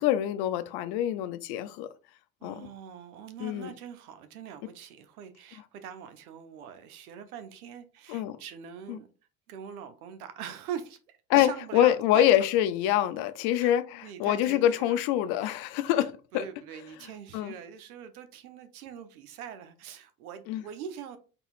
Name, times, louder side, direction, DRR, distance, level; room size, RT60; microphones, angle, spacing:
voice 1, 0.0-1.9 2.4-2.7 3.4-3.7 8.1-8.4 11.3-16.4 17.3-17.5 20.5-20.6, left 12 dB, 60° left, 0.6 m, -25 dB
voice 2, 2.4-9.1 9.5-12.5 13.6-15.0 15.4-15.5 15.9-21.2, right 8 dB, 85° right, 0.8 m, -43 dB
4.0 x 3.7 x 2.4 m
hypercardioid pair, 75°, 43 cm